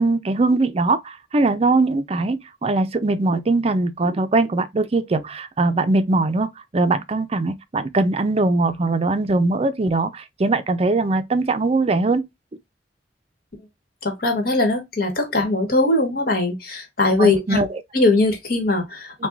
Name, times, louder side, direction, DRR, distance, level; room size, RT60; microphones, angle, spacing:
voice 1, 0.0-12.3 17.2-17.8, right 3 dB, 35° right, 0.5 m, -21 dB
voice 2, 14.0-17.6 17.9-19.3, left 2 dB, 60° left, 1.4 m, -20 dB
5.8 x 2.3 x 2.4 m
head